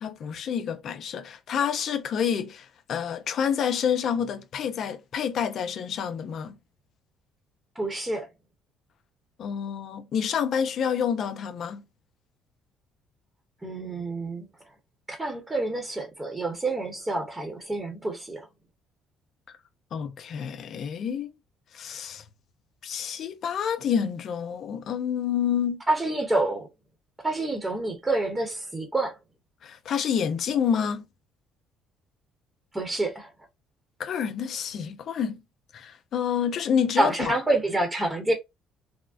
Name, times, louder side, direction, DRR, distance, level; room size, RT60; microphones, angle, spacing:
voice 1, 0.0-6.6 9.4-11.8 19.9-21.3 21.7-22.2 22.8-25.8 29.6-31.0 34.0-35.4 35.7-37.3, left 8 dB, 60° left, 0.5 m, -28 dB
voice 2, 7.8-8.3 13.6-14.4 15.1-18.4 25.9-26.7 27.2-29.1 32.7-33.3 37.0-38.3, right 2 dB, 15° right, 0.9 m, -27 dB
3.5 x 2.1 x 2.4 m
cardioid pair, 90°, 0 cm